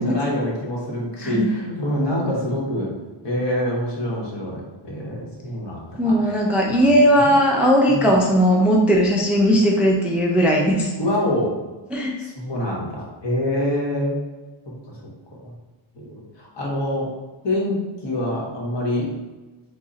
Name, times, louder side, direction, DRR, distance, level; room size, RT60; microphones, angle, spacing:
voice 1, 0.0-2.9 3.2-6.4 6.7-7.4 7.9-8.0 11.0-11.5 12.2-14.2 14.9-15.0 15.4-15.5 15.9-17.1 17.4-19.1, left 1 dB, 60° left, -3 dB, 1.1 m, -26 dB
voice 2, 6.0-10.9 11.9-12.1, equal, 5° right, -1 dB, 0.3 m, -18 dB
3.6 x 2.1 x 3.8 m, 1.2 s
wide cardioid pair, 95°, 48 cm